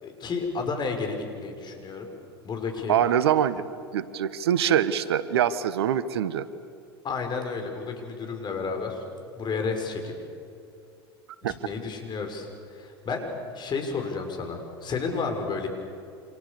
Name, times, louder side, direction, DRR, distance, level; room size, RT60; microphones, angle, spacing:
voice 1, 0.0-2.1 2.4-3.0 7.0-9.0 9.4-10.1 11.4-13.3 13.5-15.7, left 4 dB, 35° left, 4 dB, 6.2 m, -31 dB
voice 2, 2.9-3.6 3.9-6.5 11.4-11.5, right 9 dB, 75° right, 15 dB, 1.3 m, -24 dB
29.5 x 27.5 x 6.9 m, 2.6 s
hypercardioid pair, 85°, 13 cm